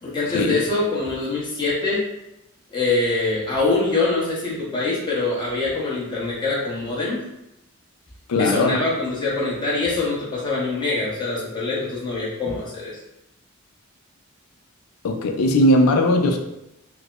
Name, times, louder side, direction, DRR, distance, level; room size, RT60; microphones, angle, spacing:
voice 1, 0.0-2.1 2.7-7.2 8.4-13.0, left 3 dB, 20° left, -7 dB, 0.8 m, -24 dB
voice 2, 8.3-8.8 15.0-16.4, left 1 dB, 75° left, 4 dB, 0.4 m, -18 dB
4.5 x 2.1 x 2.4 m, 0.89 s
head